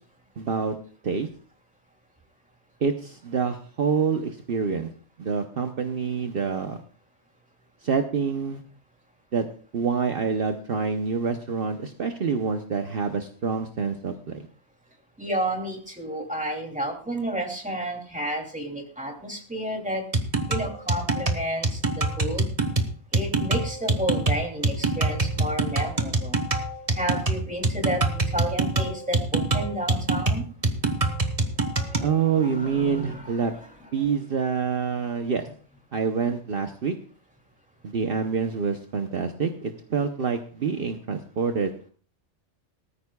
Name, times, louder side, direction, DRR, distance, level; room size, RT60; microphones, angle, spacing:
voice 1, 0.4-0.7 1.0-1.3 2.8-4.9 5.2-6.8 7.8-8.6 9.3-9.5 9.7-14.5 32.0-33.5 33.9-35.5 35.9-37.0 37.8-41.9, right 6 dB, 55° right, 6 dB, 1.1 m, -26 dB
voice 2, 15.2-20.0 20.5-22.5 23.1-26.4 26.9-30.4 31.6-31.9 32.2-33.7, right 1 dB, 5° right, 1 dB, 2.7 m, -31 dB
sound 1, 20.1-32.1, right 2 dB, 30° right, 1.3 m, -25 dB
18.5 x 14.0 x 2.3 m, 0.41 s
omnidirectional pair, 1.2 m